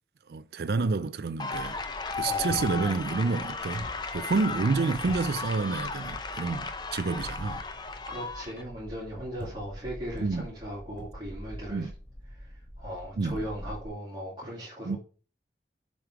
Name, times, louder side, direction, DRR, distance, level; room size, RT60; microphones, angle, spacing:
voice 1, 0.3-1.8 2.1-3.8 4.1-7.6 10.2-10.5 11.7-11.9 13.2-13.4 14.8-15.0, right 4 dB, 65° right, 0.4 m, -29 dB
sound 1, 1.4-8.6, left 4 dB, 25° left, 0.6 m, -35 dB
sound 2, 1.5-13.9, equal, 10° left, 3.3 m, -46 dB
sound 3, 2.5-3.0 3.4-3.5 3.8-4.4 5.1-5.6 9.4-9.9 10.2-10.6 11.0-11.4 13.8-13.9, equal, 45° right, 2.2 m, -43 dB
voice 2, 8.1-11.9 12.4-15.0, equal, 30° right, 2.7 m, -38 dB
7.4 x 4.9 x 4.7 m
head